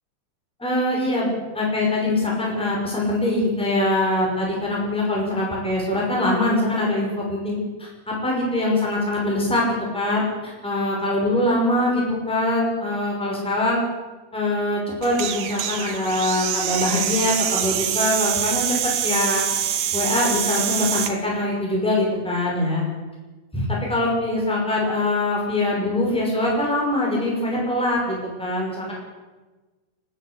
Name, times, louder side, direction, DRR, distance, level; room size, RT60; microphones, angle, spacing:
voice 1, 0.6-13.8 14.3-18.8 19.0-19.4 19.9-22.8 23.5-28.9, left 1 dB, ahead, -3 dB, 5.5 m, -23 dB
sound 1, 15.0-21.1, right 10 dB, 75° right, 2.7 m, -25 dB
29.5 x 10.5 x 8.3 m, 1.2 s
omnidirectional pair, 3.7 m